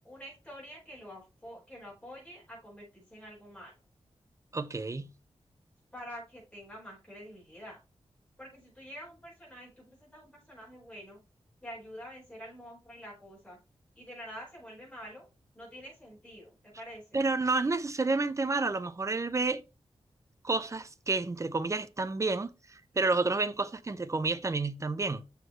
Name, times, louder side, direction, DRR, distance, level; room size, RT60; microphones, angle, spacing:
voice 1, 0.0-3.7 5.9-7.8 8.4-11.2 11.6-13.6 14.0-15.2 15.5-17.0, equal, 10° left, 4.7 m, -47 dB
voice 2, 4.5-5.1 17.1-19.6 20.4-25.2, right 3 dB, 30° right, 0.5 m, -30 dB
6.8 x 6.2 x 3.1 m
wide cardioid pair, 120°, 11 cm